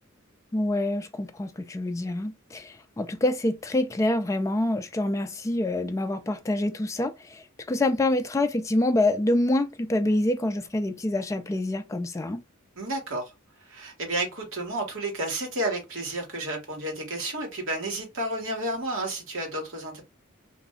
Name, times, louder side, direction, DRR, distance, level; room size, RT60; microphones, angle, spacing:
voice 1, 0.5-12.4, left 1 dB, 15° left, 0.3 m, -26 dB
voice 2, 12.8-13.3 13.6-20.0, right 1 dB, 65° right, 1.3 m, -31 dB
2.5 x 2.1 x 3.5 m
head